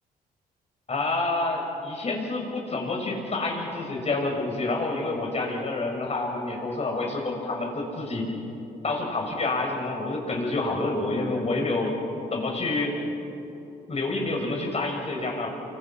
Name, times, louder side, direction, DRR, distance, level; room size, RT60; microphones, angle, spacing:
voice 1, 0.9-8.3 8.8-11.9 12.3-13.0 13.9-15.5, left 2 dB, 40° left, 1 dB, 6.6 m, -28 dB
29.5 x 25.0 x 6.0 m, 2.9 s
cardioid pair, 75°, 16 cm